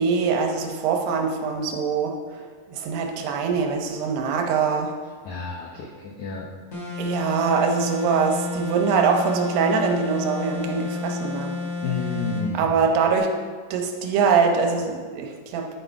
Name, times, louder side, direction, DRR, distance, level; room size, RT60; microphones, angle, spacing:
voice 1, 0.0-2.4 2.7-4.9 7.0-11.6 12.5-13.3 13.7-15.8, right 5 dB, 80° right, 3 dB, 2.9 m, -23 dB
voice 2, 5.2-6.5 11.8-12.8, left 4 dB, 85° left, -1 dB, 1.7 m, -30 dB
sound 1, 6.7-12.5, left 3 dB, 35° left, 1.6 m, -31 dB
10.0 x 6.5 x 4.6 m, 1.6 s
omnidirectional pair, 4.7 m